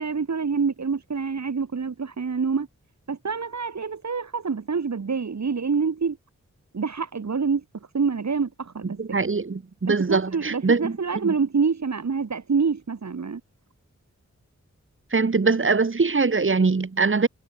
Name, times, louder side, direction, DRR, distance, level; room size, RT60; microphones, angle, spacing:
voice 1, 0.0-2.7 3.1-6.2 6.7-7.6 7.9-9.0 9.8-13.4, right 5 dB, 70° right, 3.7 m, -26 dB
voice 2, 9.0-10.9 15.1-17.3, right 4 dB, 45° right, 2.5 m, -22 dB
wide cardioid pair, 90°, 29 cm